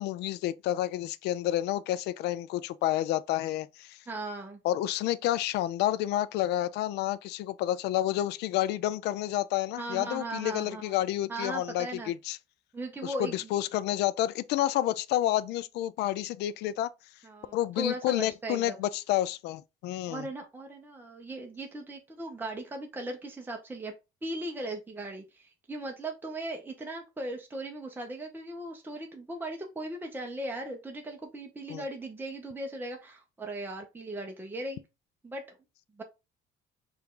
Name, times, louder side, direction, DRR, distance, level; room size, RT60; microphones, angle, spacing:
voice 1, 0.0-4.0 4.6-12.4 13.0-16.9 17.5-20.3 31.7-31.8, left 13 dB, 80° left, 0.4 m, -29 dB
voice 2, 4.1-4.6 9.8-10.9 11.3-12.1 12.7-13.5 17.2-18.8 20.1-23.9 24.2-34.8 35.2-35.6 36.0-36.1, right 1 dB, 10° right, 0.8 m, -38 dB
4.5 x 2.5 x 3.7 m
cardioid pair, 110°, 17 cm